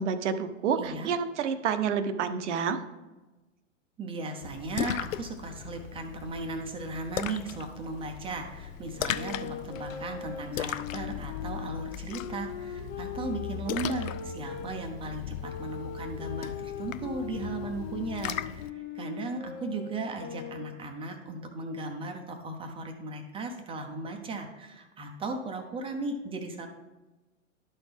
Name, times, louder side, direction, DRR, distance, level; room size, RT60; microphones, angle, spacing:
voice 1, 0.0-2.8, right 6 dB, 65° right, 10 dB, 0.9 m, -29 dB
voice 2, 0.8-1.1 4.0-26.7, right 3 dB, 15° right, 4 dB, 0.7 m, -36 dB
Splash splatter, 4.4-18.7, left 10 dB, 85° left, 0.5 m, -38 dB
sound 1, 8.9-14.7 15.4-20.9, left 7 dB, 35° left, 0.9 m, -41 dB
12.0 x 4.3 x 3.5 m, 1.2 s
hypercardioid pair, 125°, 38 cm